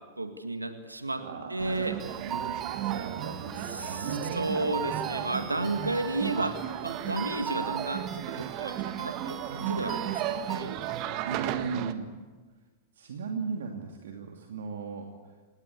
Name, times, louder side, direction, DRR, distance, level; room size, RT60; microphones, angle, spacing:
voice 1, 0.2-1.2 1.5-2.0 3.6-6.6 6.8-10.8, right 2 dB, 85° right, 7 dB, 2.0 m, -33 dB
voice 2, 1.2-1.8 2.2-2.6 2.8-4.7 11.2-12.1 13.0-15.1, right 5 dB, 65° right, 2 dB, 2.7 m, -36 dB
sound 1, 1.6-11.9, right 11 dB, 45° right, 1.7 m, -35 dB
sound 2, 2.0-11.1, right 8 dB, 25° right, 1.5 m, -41 dB
27.5 x 20.0 x 8.4 m, 1.3 s
figure-of-eight pair, 95°, 0 cm